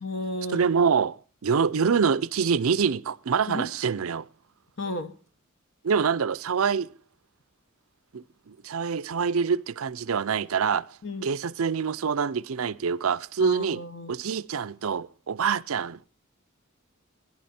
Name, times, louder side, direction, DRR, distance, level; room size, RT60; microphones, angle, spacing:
voice 1, 0.0-0.6 3.5-3.7 4.8-5.1 11.0-11.3 13.4-14.1, left 1 dB, 60° left, 1.1 m, -33 dB
voice 2, 0.5-4.3 5.8-6.9 8.1-10.9 11.2-13.8 14.1-16.1, right 6 dB, 80° right, 0.5 m, -25 dB
16.5 x 11.0 x 4.3 m
head